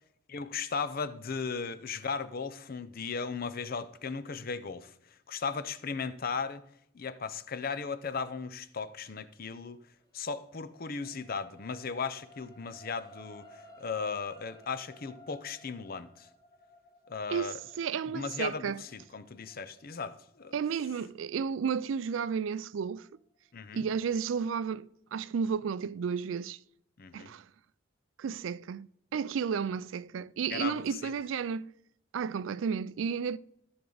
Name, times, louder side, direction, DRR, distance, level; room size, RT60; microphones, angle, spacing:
voice 1, 0.3-4.9 5.3-6.6 6.9-9.8 10.1-13.4 13.8-16.3 17.1-17.6 18.1-20.5 23.5-23.9 27.0-27.3 30.5-31.1, left 5 dB, 50° left, 0.6 m, -36 dB
sound 1, 10.0-22.5 23.1-23.2, left 1 dB, 20° left, 1.4 m, -57 dB
voice 2, 17.3-18.8 20.5-23.1 23.7-26.6 27.1-27.4 28.2-28.9 29.1-31.7 32.1-33.4, right 6 dB, 85° right, 0.4 m, -32 dB
14.0 x 7.0 x 3.9 m
head